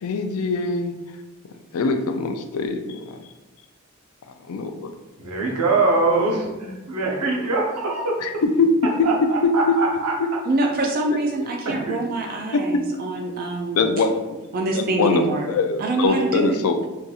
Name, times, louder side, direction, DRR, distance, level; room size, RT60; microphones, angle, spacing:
voice 1, 0.0-0.9 1.7-3.2 4.5-4.9 8.2-8.7 11.4-11.5 12.5-12.8 13.7-14.2 14.7-16.9, left 3 dB, 70° left, 6 dB, 0.4 m, -23 dB
voice 2, 5.2-8.2 9.0-10.1 11.6-12.0, right 3 dB, 90° right, -2 dB, 0.8 m, -23 dB
voice 3, 10.5-13.9 14.5-15.5 15.8-16.6, right 2 dB, 40° right, 1 dB, 0.3 m, -25 dB
4.0 x 2.6 x 2.4 m, 1.1 s
head